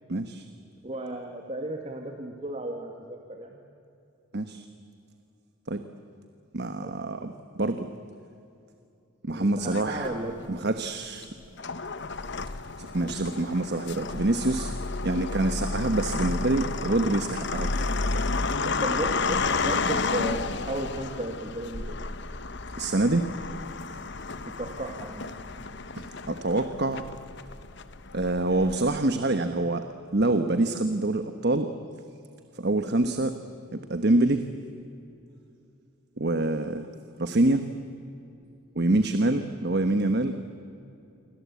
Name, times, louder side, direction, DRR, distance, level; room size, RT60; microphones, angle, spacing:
voice 1, 0.1-0.5 4.3-4.6 5.7-5.8 6.5-7.3 7.6-7.9 9.2-10.1 10.5-11.3 12.8-14.7 15.0-18.0 18.6-18.7 22.8-23.3 26.0-27.1 28.1-31.7 32.5-33.4 33.7-34.5 36.2-36.9 37.2-37.7 38.7-40.4, right 2 dB, 50° right, 9 dB, 1.2 m, -26 dB
voice 2, 0.8-3.6 6.8-7.0 9.3-10.6 16.3-16.6 18.8-22.0 24.4-25.3, right 1 dB, 30° right, 2 dB, 2.0 m, -35 dB
sound 1, 9.7-10.5 11.2-29.0, left 3 dB, 55° left, 1.1 m, -31 dB
28.0 x 24.0 x 8.4 m, 2.7 s
head